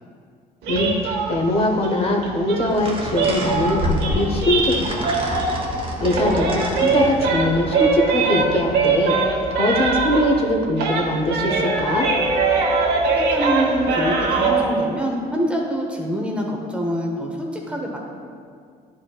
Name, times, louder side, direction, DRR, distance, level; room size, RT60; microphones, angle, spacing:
sound 1, 0.6-5.7 6.0-10.5 10.8-14.7, right 4 dB, 80° right, 1.2 m, -22 dB
voice 1, 0.7-5.4 6.0-12.1, left 1 dB, 35° left, 1 dB, 0.8 m, -22 dB
sound 2, 2.7-8.7, equal, 30° right, 0.9 m, -28 dB
voice 2, 13.1-18.0, equal, 5° right, -1 dB, 0.8 m, -25 dB
10.5 x 4.2 x 2.3 m, 2.1 s
cardioid pair, 110°, 17 cm